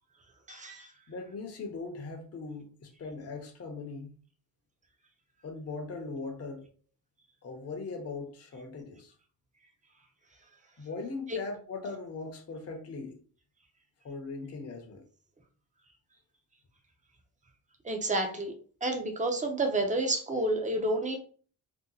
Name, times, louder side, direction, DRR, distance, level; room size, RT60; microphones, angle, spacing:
voice 1, 0.5-0.9 11.3-11.4 17.8-18.5 18.8-21.2, right 1 dB, 20° right, 0.6 m, -30 dB
voice 2, 1.1-4.1 5.4-6.6 7.4-9.1 10.8-13.2 14.0-15.0, left 3 dB, 35° left, 0.7 m, -39 dB
2.8 x 2.1 x 3.8 m
wide cardioid pair, 145°, 41 cm